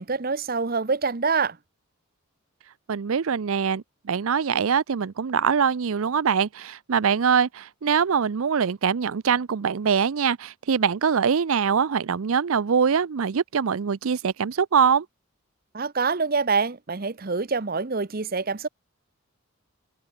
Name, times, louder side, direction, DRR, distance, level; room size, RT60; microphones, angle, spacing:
voice 1, 0.0-1.6 15.7-18.7, right 4 dB, 40° right, 0.8 m, -25 dB
voice 2, 2.9-15.1, right 6 dB, 70° right, 0.5 m, -23 dB
head